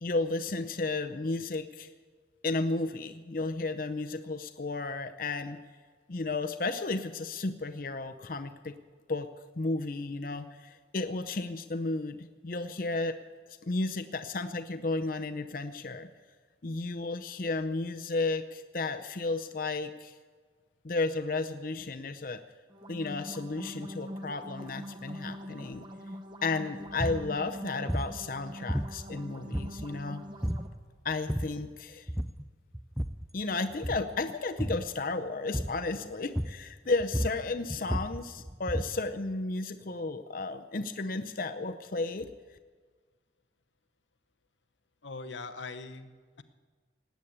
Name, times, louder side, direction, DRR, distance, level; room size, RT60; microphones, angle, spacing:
voice 1, 0.0-1.9 2.4-5.6 6.1-8.7 9.1-9.3 9.6-13.2 13.6-16.1 16.6-20.1 20.8-22.4 22.9-25.8 26.4-30.2 31.0-32.1 33.3-42.3, left 3 dB, 50° left, 8 dB, 0.6 m, -33 dB
sound 1, 22.7-30.7, equal, 25° right, 1.0 m, -43 dB
sound 2, 26.9-27.3 27.9-28.2 28.7-29.2 29.5-30.0 30.4-30.7 31.1-31.7 32.1-32.5 32.7-33.3 33.7-34.1 34.6-34.9 35.5-35.9 36.4-36.7 37.0-39.1, equal, ahead, 0.4 m, -33 dB
voice 2, 45.0-46.4, left 3 dB, 85° left, 10 dB, 0.9 m, -42 dB
19.0 x 8.2 x 8.7 m, 1.5 s
head